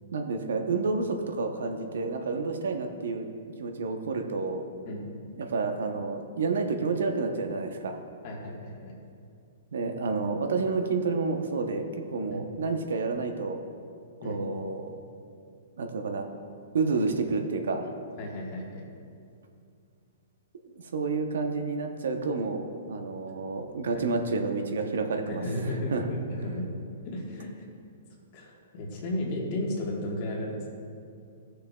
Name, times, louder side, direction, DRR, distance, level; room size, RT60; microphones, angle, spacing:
voice 1, 0.1-3.3 3.6-4.6 5.4-8.0 9.7-13.6 14.2-14.9 15.8-16.3 16.7-17.9 20.7-26.1, right 4 dB, 85° right, 5 dB, 0.8 m, -30 dB
voice 2, 8.2-8.9 12.3-12.5 14.2-14.4 16.9-17.0 18.2-18.9 23.9-24.0 25.3-26.7 27.0-27.6 28.3-30.6, left 1 dB, 35° left, -1 dB, 1.4 m, -34 dB
14.0 x 6.6 x 2.3 m, 2.4 s
hypercardioid pair, 170°, 0 cm